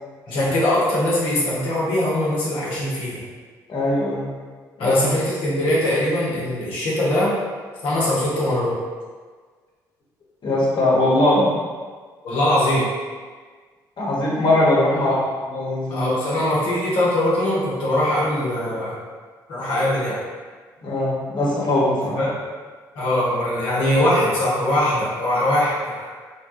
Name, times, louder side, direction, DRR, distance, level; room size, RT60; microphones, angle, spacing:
voice 1, 0.3-3.2 4.8-7.3 7.8-8.8 12.2-12.9 15.9-18.9 19.5-20.2 22.2-22.3 22.9-26.1, left 1 dB, 70° left, -7 dB, 0.9 m, -21 dB
voice 2, 3.7-4.3 4.8-4.9 10.4-11.5 14.0-16.1 20.8-22.2, left 1 dB, 50° left, -6 dB, 1.2 m, -20 dB
3.1 x 2.2 x 3.0 m, 1.5 s
hypercardioid pair, 50°, 10 cm